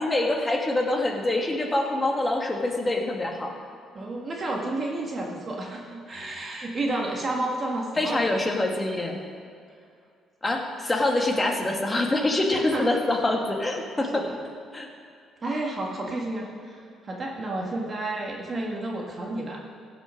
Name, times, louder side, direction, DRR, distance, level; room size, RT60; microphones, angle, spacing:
voice 1, 0.0-3.5 8.0-9.2 10.4-14.2 14.7-14.9, left 2 dB, 20° left, 1 dB, 1.6 m, -25 dB
voice 2, 3.9-8.3 12.5-12.9 14.1-14.4 15.4-19.6, right 2 dB, 35° right, -1 dB, 1.6 m, -31 dB
16.0 x 5.8 x 6.2 m, 2.3 s
cardioid pair, 110°, 0 cm